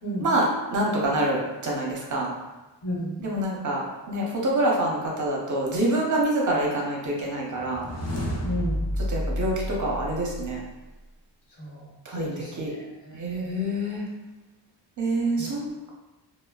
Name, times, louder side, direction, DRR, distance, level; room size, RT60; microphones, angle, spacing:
voice 1, 0.2-2.3 3.2-3.8 4.1-7.9 9.1-10.6 12.1-12.3 12.6-12.7 13.1-14.0 15.0-15.9, right 1 dB, 45° right, -3 dB, 0.6 m, -26 dB
voice 2, 2.8-3.2 8.4-8.8 11.6-13.6 15.4-15.5, equal, 65° left, -5 dB, 0.9 m, -34 dB
sound 1, 7.5-10.8, equal, 40° left, 0.4 m, -30 dB
3.0 x 2.0 x 2.2 m, 1.1 s
wide cardioid pair, 155°, 44 cm